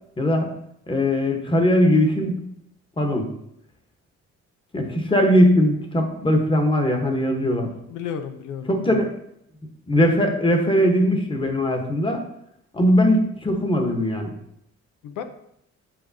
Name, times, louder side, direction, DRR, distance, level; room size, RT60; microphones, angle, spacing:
voice 1, 0.2-0.5 0.9-2.4 3.0-3.3 4.7-7.7 8.7-9.1 9.9-12.2 12.7-14.3, equal, 15° left, 4 dB, 1.2 m, -20 dB
voice 2, 7.9-9.1 15.0-15.2, left 7 dB, 85° left, 8 dB, 0.7 m, -33 dB
8.6 x 4.9 x 2.8 m, 0.74 s
cardioid pair, 90°, 30 cm